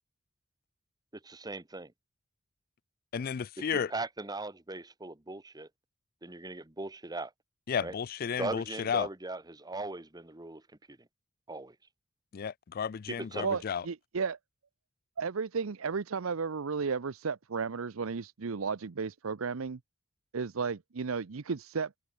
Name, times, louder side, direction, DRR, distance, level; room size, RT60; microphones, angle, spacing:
voice 1, 1.2-1.9 3.7-5.7 6.2-7.3 7.8-8.0 8.4-10.6 10.9-11.0 11.5-11.7 13.1-13.4, right 2 dB, 20° right, 1.3 m, -39 dB
voice 2, 3.1-3.9 7.7-9.1 12.3-13.8, left 7 dB, 45° left, 0.4 m, -33 dB
voice 3, 13.4-14.4 15.2-19.8 20.3-22.0, right 5 dB, 90° right, 0.7 m, -33 dB
head